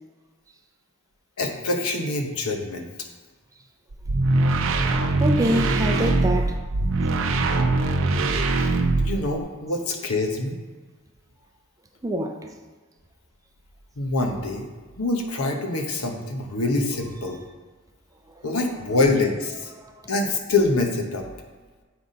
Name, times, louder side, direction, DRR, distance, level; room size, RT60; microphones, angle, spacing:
voice 1, 1.4-2.9 9.0-10.5 14.0-14.7 15.0-17.4 18.4-19.7 20.1-21.3, left 2 dB, 75° left, 3 dB, 1.0 m, -25 dB
sound 1, 3.9-9.4, right 2 dB, 60° right, 0.6 m, -22 dB
voice 2, 5.2-6.6 12.0-12.4 19.8-20.1, right 1 dB, 15° right, 3 dB, 0.5 m, -25 dB
8.0 x 4.1 x 5.1 m, 1.4 s
head